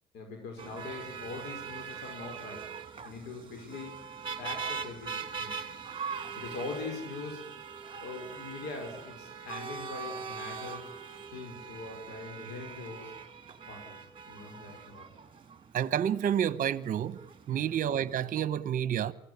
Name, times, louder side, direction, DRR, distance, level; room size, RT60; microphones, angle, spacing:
voice 1, 0.1-2.7 3.0-3.9 4.4-5.6 6.3-11.0 11.3-13.1 13.7-15.1 17.5-17.8, left 3 dB, 80° left, 5.8 m, -42 dB
sound 1, 0.6-18.4, right 6 dB, 30° right, 2.9 m, -42 dB
voice 2, 15.7-17.2 17.5-19.1, right 9 dB, 55° right, 1.1 m, -29 dB
24.0 x 16.5 x 9.9 m
cardioid pair, 110°, 17 cm